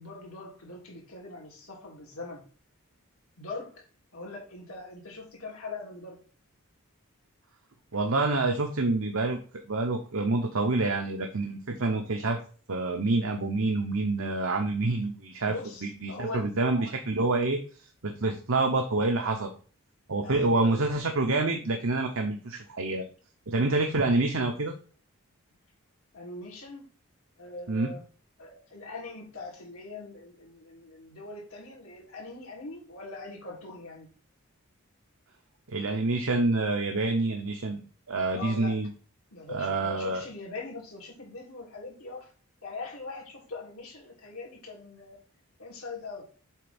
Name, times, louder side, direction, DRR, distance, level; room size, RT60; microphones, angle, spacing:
voice 1, 0.0-2.4 3.4-3.8 4.1-6.2 15.4-16.5 20.2-20.9 26.1-26.9 27.4-28.0 28.4-34.1 38.3-38.8 39.3-42.3 42.6-45.2 45.6-46.2, left 3 dB, 80° left, -2 dB, 3.0 m, -41 dB
voice 2, 7.9-12.4 12.7-15.5 16.0-17.6 18.0-19.5 20.1-23.0 23.5-24.7 27.7-27.9 35.7-37.8 38.1-38.9 39.5-40.2, right 2 dB, 65° right, 3 dB, 0.9 m, -27 dB
7.4 x 3.5 x 5.2 m, 0.39 s
head